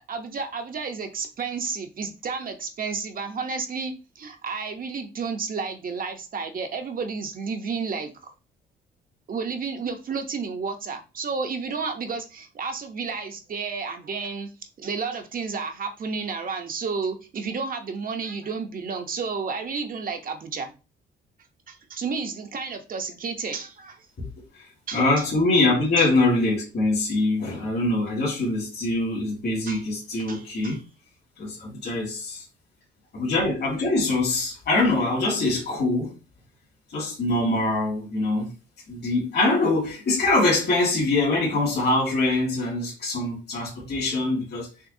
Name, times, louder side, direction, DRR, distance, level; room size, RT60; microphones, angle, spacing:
voice 1, 0.0-8.1 9.3-14.5 14.8-20.7 21.7-24.1 24.9-25.3 26.0-26.1 29.7-29.8 30.2-30.8, right 5 dB, 45° right, 0.8 m, -31 dB
voice 2, 24.9-30.8 31.4-32.4 33.1-36.1 36.9-38.5 38.9-44.7, left 2 dB, 55° left, 2.4 m, -23 dB
6.2 x 2.3 x 2.7 m
cardioid pair, 90°, 20 cm